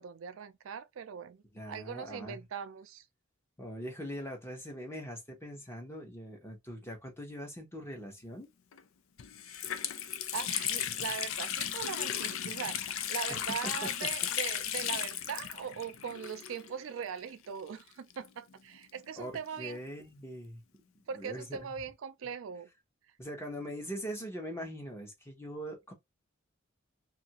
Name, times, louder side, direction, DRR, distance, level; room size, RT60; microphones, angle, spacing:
voice 1, 0.0-3.0 9.5-9.6 10.3-19.8 21.1-22.7, right 7 dB, 70° right, 0.4 m, -40 dB
voice 2, 1.5-2.4 3.6-8.5 13.3-13.9 19.2-20.6 21.1-21.7 23.2-25.9, equal, 15° left, 0.8 m, -42 dB
Water tap faucet, 8.7-8.8 9.2-16.9 17.2-17.3 18.1-19.7, left 10 dB, 70° left, 0.4 m, -35 dB
2.7 x 2.5 x 2.8 m
head